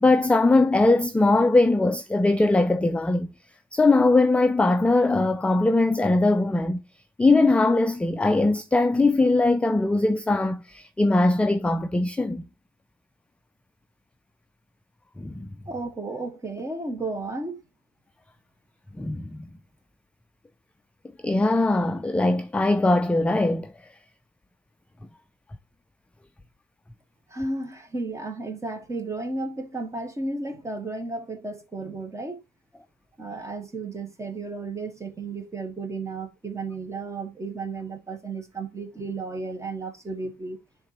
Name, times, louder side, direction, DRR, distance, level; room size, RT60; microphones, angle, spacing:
voice 1, 0.0-3.3 3.7-6.8 7.2-12.5 15.2-15.5 19.0-19.3 21.2-23.7, left 2 dB, 5° left, 0.4 m, -21 dB
voice 2, 15.7-17.6 27.3-32.4 33.2-40.6, right 3 dB, 15° right, 1.3 m, -33 dB
9.8 x 3.8 x 2.9 m
cardioid pair, 110°, 17 cm